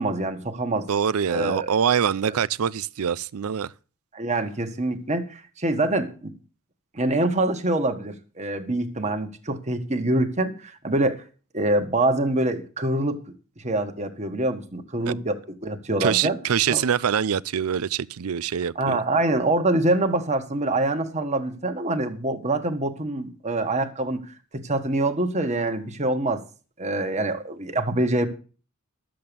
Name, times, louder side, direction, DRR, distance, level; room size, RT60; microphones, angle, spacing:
voice 1, 0.0-0.9 1.3-1.7 2.2-2.4 4.1-6.3 6.9-11.2 11.5-13.2 13.6-16.4 16.7-16.8 18.7-26.4 26.8-28.3, right 2 dB, 30° right, 1.5 m, -25 dB
voice 2, 0.9-3.7 15.1-15.2 16.0-19.0, right 8 dB, 75° right, 0.5 m, -24 dB
12.5 x 7.7 x 6.9 m
head